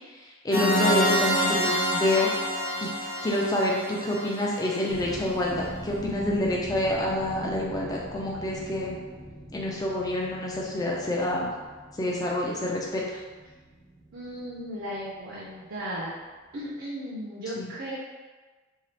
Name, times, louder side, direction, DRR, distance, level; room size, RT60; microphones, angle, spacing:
voice 1, 0.2-2.3 2.8-2.9 3.2-9.0 9.5-11.5 12.0-13.2 17.6-17.7, left 1 dB, 20° left, -3 dB, 0.4 m, -27 dB
sound 1, 0.5-5.2, equal, 75° left, 0.6 m, -27 dB
sound 2, 4.9-15.6 15.9-16.2 16.6-16.7, equal, 35° left, 1.0 m, -42 dB
voice 2, 14.1-16.1 16.5-17.9, equal, 65° right, -6 dB, 0.5 m, -36 dB
2.8 x 2.4 x 3.1 m, 1.3 s
head